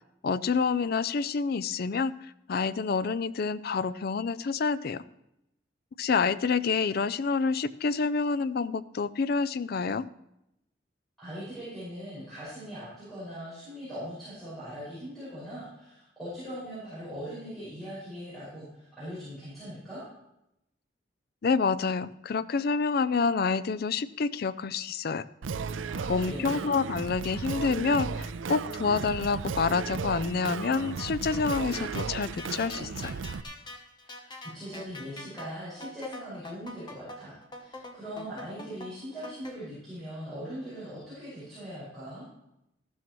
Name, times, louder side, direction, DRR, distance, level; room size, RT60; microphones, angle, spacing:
voice 1, 0.2-2.1 2.5-5.0 6.0-10.1 21.4-25.3 26.1-33.1, left 5 dB, 50° left, 16 dB, 0.4 m, -28 dB
voice 2, 11.2-20.0 25.8-26.7 34.0-42.2, equal, ahead, -11 dB, 5.6 m, -41 dB
Singing, 25.4-33.4, right 5 dB, 80° right, 0.5 m, -35 dB
sound 1, 31.0-39.6, left 1 dB, 25° left, 0.9 m, -44 dB
14.0 x 12.5 x 3.1 m, 0.84 s
head